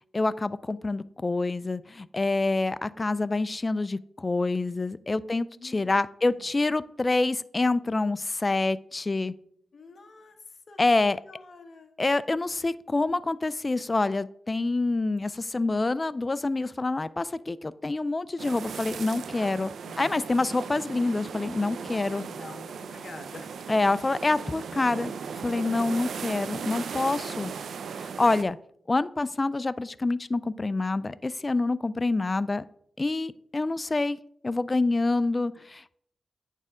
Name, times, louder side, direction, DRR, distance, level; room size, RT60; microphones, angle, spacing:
voice 1, 0.1-9.3 10.8-11.2 12.0-19.7 20.0-22.2 23.7-27.5 28.0-28.6 28.9-32.6 33.0-34.2 34.4-36.0, left 3 dB, 35° left, 17 dB, 0.4 m, -27 dB
voice 2, 5.3-6.4 9.7-10.4 10.7-10.8 11.1-11.9 19.8-20.2 22.1-23.5, left 3 dB, 60° left, 6 dB, 1.3 m, -47 dB
sound 1, 18.4-28.4, right 6 dB, 80° right, 0.5 m, -37 dB
9.1 x 6.5 x 3.7 m, 0.68 s
cardioid pair, 60°, 0 cm